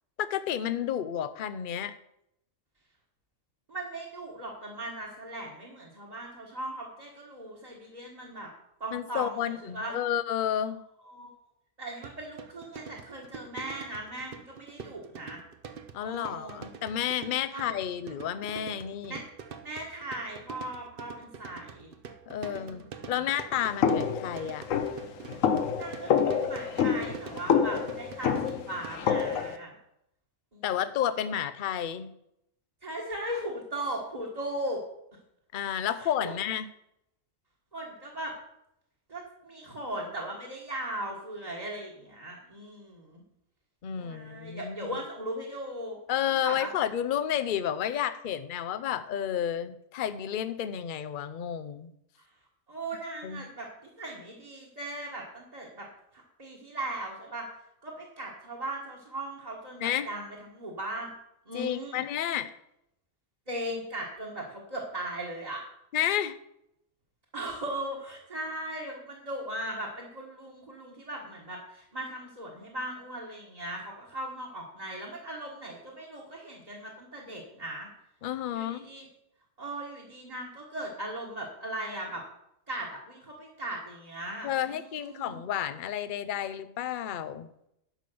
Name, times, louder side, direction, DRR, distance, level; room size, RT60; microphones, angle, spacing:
voice 1, 0.2-1.9 8.9-10.8 15.9-19.2 22.3-24.7 30.6-32.1 35.5-36.7 43.8-45.0 46.1-51.9 53.2-53.4 59.8-60.1 61.5-62.5 65.9-66.4 78.2-78.8 84.4-87.5, left 10 dB, 50° left, 12 dB, 0.7 m, -31 dB
voice 2, 3.7-8.5 8.8-10.0 11.1-11.3 11.8-15.4 16.0-16.6 17.5-17.7 19.1-19.2 19.6-21.9 22.4-23.1 25.7-29.7 30.5-30.6 32.8-34.8 36.0-36.3 37.7-38.3 39.1-43.2 44.0-46.7 52.7-53.7 54.0-55.9 56.1-57.5 57.8-61.1 61.4-62.0 63.5-65.6 67.3-77.9 78.5-79.1 79.6-82.2 82.7-85.4, right 1 dB, 30° right, -4 dB, 1.7 m, -38 dB
sound 1, 12.0-29.4, right 6 dB, 50° right, 0.9 m, -45 dB
sound 2, 23.8-29.6, left 7 dB, 80° left, 1.2 m, -27 dB
11.0 x 5.2 x 6.8 m, 0.80 s
omnidirectional pair, 1.3 m